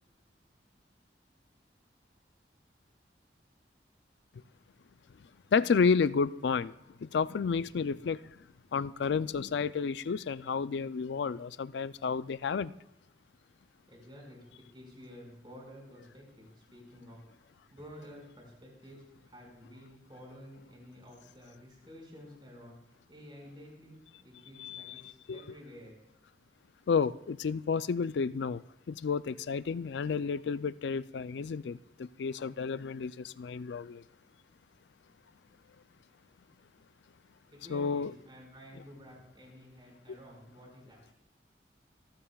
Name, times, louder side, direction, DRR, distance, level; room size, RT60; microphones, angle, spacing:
voice 1, 5.5-8.2 8.7-12.7 24.6-25.0 25.3-25.4 26.9-28.6 28.9-34.0 37.7-38.1, left 5 dB, 80° left, 0.4 m, -31 dB
voice 2, 13.9-22.8 23.1-26.0 37.5-41.1, equal, 25° right, 5.3 m, -51 dB
25.0 x 14.5 x 2.3 m
head